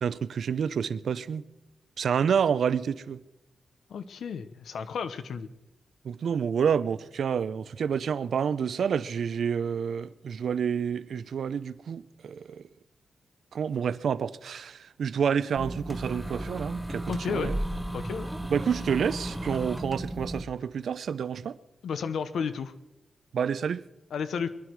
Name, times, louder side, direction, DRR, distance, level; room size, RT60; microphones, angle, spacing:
voice 1, 0.0-1.4 2.0-3.2 6.0-12.6 13.5-17.6 18.5-21.6 23.3-23.8, right 7 dB, 70° right, 0.5 m, -29 dB
voice 2, 3.9-5.5 17.1-17.5 17.9-18.3 21.8-22.7 24.1-24.5, left 6 dB, 80° left, 0.9 m, -32 dB
sound 1, 15.6-20.4, right 1 dB, ahead, 0.9 m, -34 dB
22.0 x 11.0 x 4.7 m
wide cardioid pair, 155°, 0 cm